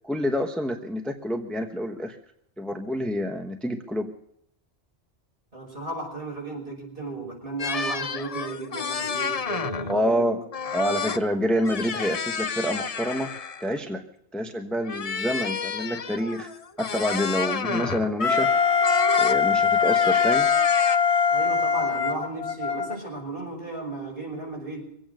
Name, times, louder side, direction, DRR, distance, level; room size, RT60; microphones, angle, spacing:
voice 1, 0.0-2.2 2.6-4.1 9.9-10.4 10.7-13.3 13.6-14.0 14.3-16.5 16.8-18.5 19.2-20.5, equal, ahead, 5 dB, 1.0 m, -27 dB
voice 2, 5.5-10.4 11.5-11.6 21.3-24.9, right 2 dB, 55° right, 0 dB, 6.0 m, -35 dB
sound 1, 7.6-10.0 10.5-11.2 11.5-13.8 14.8-18.1 18.8-19.4 19.8-21.0, left 6 dB, 40° left, 0.7 m, -31 dB
Wind instrument woodwind instrument, 18.2-23.0, left 6 dB, 75° left, 1.6 m, -22 dB
23.5 x 8.8 x 6.4 m, 0.72 s
omnidirectional pair, 1.1 m